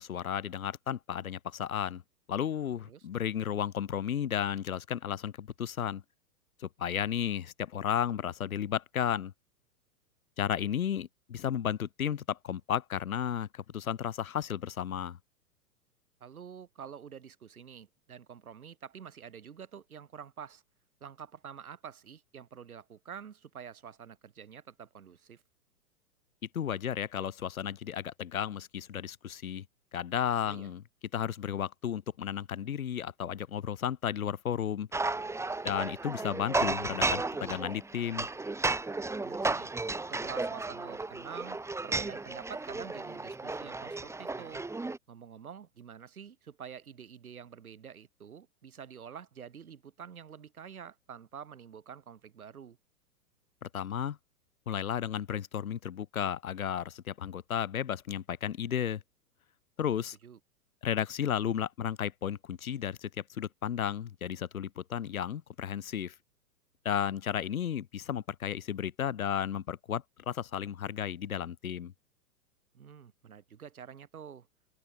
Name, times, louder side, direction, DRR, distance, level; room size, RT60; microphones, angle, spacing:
voice 1, 0.0-2.0 2.3-6.0 6.6-9.3 10.4-15.2 26.5-29.6 29.9-30.8 31.1-34.9 35.6-38.3 53.6-54.2 54.7-59.0 59.8-60.2 60.8-66.1 66.8-71.9, left 9 dB, 60° left, 3.0 m, -33 dB
voice 2, 16.2-20.6 21.0-25.4 30.4-30.7 39.2-39.7 40.1-44.6 45.1-52.8 60.2-60.4 72.7-74.5, right 7 dB, 65° right, 7.8 m, -47 dB
sound 1, 34.9-45.0, right 3 dB, 5° right, 3.6 m, -34 dB
figure-of-eight pair, 105°, 47 cm